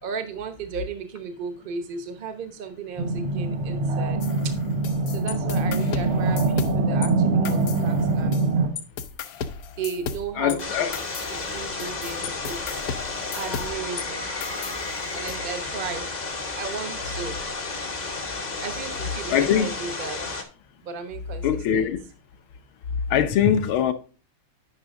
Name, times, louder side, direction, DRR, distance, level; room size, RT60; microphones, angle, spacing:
voice 1, 0.0-4.2 4.4-4.5 5.1-8.4 9.8-10.9 11.3-12.8 13.3-14.3 15.1-16.1 16.5-17.4 18.6-20.2 20.8-21.5 21.7-21.9, right 5 dB, 45° right, 0.6 m, -35 dB
sound 1, 3.0-8.7, right 3 dB, 80° right, 2.2 m, -23 dB
sound 2, 4.2-7.1 7.4-8.5 8.8-14.1 14.4-15.4, left 7 dB, 90° left, 0.8 m, -35 dB
voice 2, 10.4-10.9 19.3-19.7 21.4-22.0 23.1-23.9, left 9 dB, 70° left, 1.6 m, -21 dB
sound 3, 10.6-20.4, left 3 dB, 40° left, 0.6 m, -32 dB
9.5 x 6.0 x 3.7 m
omnidirectional pair, 2.4 m